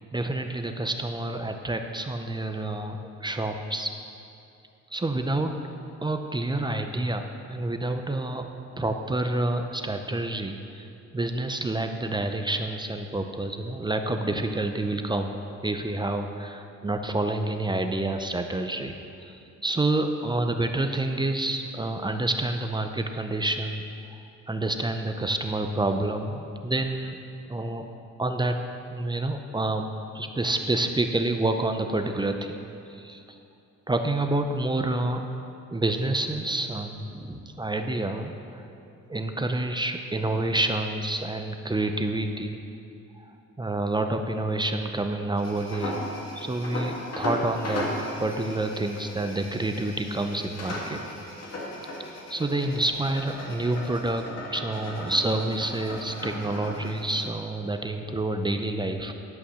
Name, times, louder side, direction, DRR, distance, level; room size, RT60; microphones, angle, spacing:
voice 1, 0.1-3.9 4.9-5.6 6.0-8.5 8.8-10.9 11.1-15.3 15.6-18.9 19.3-23.8 24.5-27.2 27.5-27.9 28.2-28.6 28.9-29.9 30.1-32.5 32.9-33.2 33.9-35.2 35.7-38.7 39.1-42.6 43.2-43.3 43.6-46.0 46.4-47.9 48.2-51.0 52.3-54.2 54.5-59.1, right 2 dB, 15° right, 5 dB, 0.6 m, -28 dB
sound 1, 45.4-57.3, left 1 dB, 55° left, 2.2 m, -36 dB
11.0 x 5.7 x 6.3 m, 2.6 s
cardioid pair, 90°, 30 cm